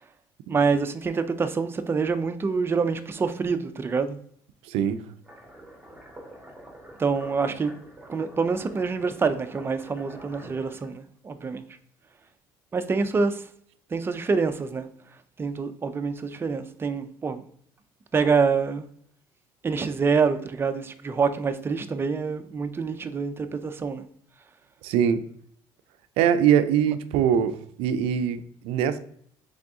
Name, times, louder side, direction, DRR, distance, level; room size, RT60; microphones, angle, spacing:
voice 1, 0.5-4.2 7.0-7.8 8.1-11.6 12.7-13.4 13.9-14.9 15.4-17.4 18.1-18.9 19.6-24.1, right 5 dB, 25° right, 0.4 m, -26 dB
voice 2, 4.7-5.0 24.8-25.2 26.2-29.0, right 8 dB, 85° right, 0.4 m, -23 dB
sound 1, 5.2-10.9, right 1 dB, 5° right, 1.7 m, -47 dB
3.8 x 3.4 x 3.5 m
cardioid pair, 100°, 10 cm